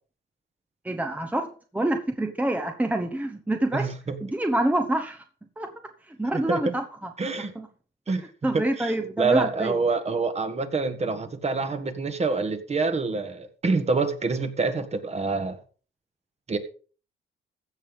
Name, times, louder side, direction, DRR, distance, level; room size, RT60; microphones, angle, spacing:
voice 1, 0.8-1.5 1.7-3.9 4.2-5.2 5.6-5.7 6.1-7.1 7.5-7.7 8.4-9.7, right 1 dB, 10° right, 6 dB, 1.1 m, -27 dB
voice 2, 3.7-4.2 6.3-6.7 7.2-7.5 8.1-15.6 16.5-16.6, right 3 dB, 35° right, 8 dB, 1.7 m, -26 dB
15.5 x 5.7 x 5.4 m, 0.39 s
cardioid pair, 90°, 20 cm